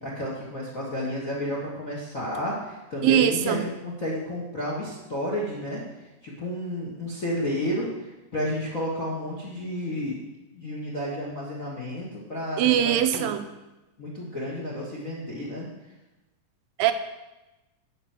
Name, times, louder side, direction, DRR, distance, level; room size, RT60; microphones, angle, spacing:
voice 1, 0.0-10.2 10.5-13.3 14.0-15.7, left 1 dB, 40° left, -3 dB, 1.2 m, -31 dB
voice 2, 3.0-3.6 12.6-13.5 16.8-16.9, right 11 dB, 80° right, 9 dB, 2.4 m, -21 dB
10.5 x 5.4 x 7.4 m, 1.0 s
omnidirectional pair, 4.1 m